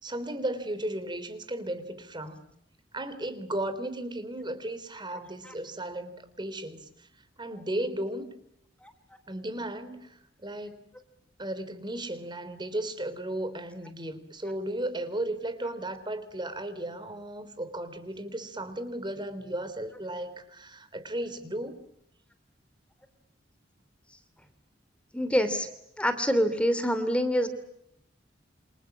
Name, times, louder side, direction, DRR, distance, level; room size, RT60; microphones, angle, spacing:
voice 1, 0.0-2.4 2.9-7.1 7.4-8.3 9.3-10.8 11.4-21.8, right 1 dB, 25° right, 12 dB, 3.5 m, -35 dB
voice 2, 25.1-25.7 26.0-27.5, equal, 5° left, 10 dB, 2.9 m, -26 dB
29.0 x 27.0 x 7.4 m, 0.77 s
head